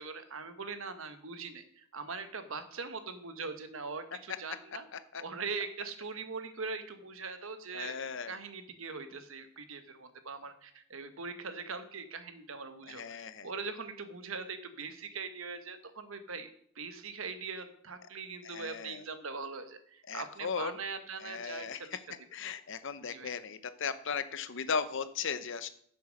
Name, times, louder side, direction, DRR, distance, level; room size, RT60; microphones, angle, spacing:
voice 1, 0.0-4.9 5.2-8.0 8.3-16.5 16.7-22.0 23.0-23.3, right 4 dB, 65° right, 9 dB, 1.3 m, -41 dB
voice 2, 4.9-5.2 7.7-8.3 12.9-13.5 18.4-19.0 20.1-20.7 21.2-22.0 22.3-25.7, left 6 dB, 60° left, 12 dB, 0.8 m, -37 dB
10.0 x 6.9 x 6.4 m, 0.64 s
head